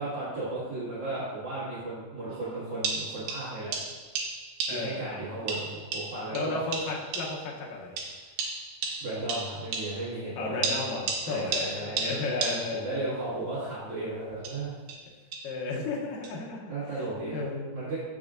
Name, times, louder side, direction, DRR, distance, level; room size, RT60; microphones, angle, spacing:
voice 1, 0.0-3.8 4.7-6.6 9.0-10.8 11.2-14.8 16.7-17.4 17.7-18.0, right 2 dB, 50° right, -12 dB, 2.2 m, -35 dB
sound 1, 2.3-2.4 2.8-5.1 5.5-7.6 8.0-10.2 10.6-12.9 14.3-15.6 16.2-16.3, right 4 dB, 75° right, 2.6 m, -34 dB
voice 2, 4.7-5.1 6.3-8.0 10.4-13.2 15.4-17.1 17.3-17.7, left 3 dB, 75° left, -2 dB, 2.2 m, -34 dB
7.5 x 6.0 x 2.4 m, 1.3 s
omnidirectional pair, 4.3 m